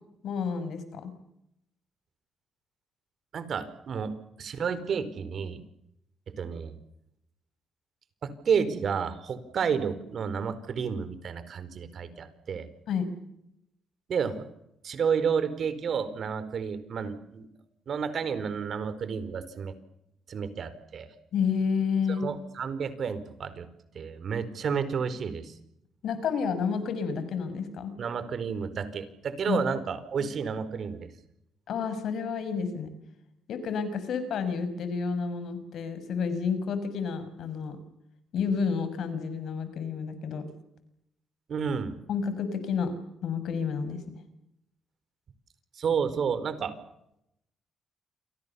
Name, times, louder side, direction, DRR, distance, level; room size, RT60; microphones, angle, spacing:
voice 1, 0.2-1.1 12.9-13.1 21.3-22.3 26.0-28.0 29.5-29.6 30.2-30.3 31.7-32.9 33.5-37.8 38.3-40.5 42.1-42.9 43.2-44.0, left 6 dB, 75° left, 11 dB, 5.9 m, -30 dB
voice 2, 3.3-5.6 6.3-6.7 8.2-12.7 14.1-14.5 14.8-17.5 17.9-19.7 20.3-21.1 22.2-23.7 23.9-25.5 28.0-31.1 41.5-41.9 45.8-46.7, right 6 dB, 60° right, 13 dB, 4.5 m, -31 dB
29.0 x 24.0 x 7.1 m, 0.81 s
cardioid pair, 70°, 0 cm